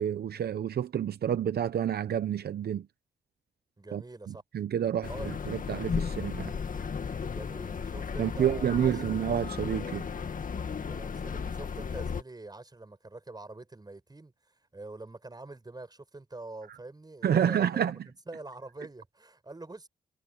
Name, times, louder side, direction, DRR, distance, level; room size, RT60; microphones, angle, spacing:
voice 1, 0.0-2.8 3.9-4.0 4.3-6.5 8.2-10.1 17.2-17.9, right 9 dB, 75° right, 0.8 m, -29 dB
voice 2, 3.8-4.4 5.1-5.3 7.2-9.0 10.9-19.9, right 2 dB, 25° right, 5.7 m, -45 dB
sound 1, 5.0-12.2, left 6 dB, 55° left, 1.9 m, -35 dB
cardioid pair, 75°, 16 cm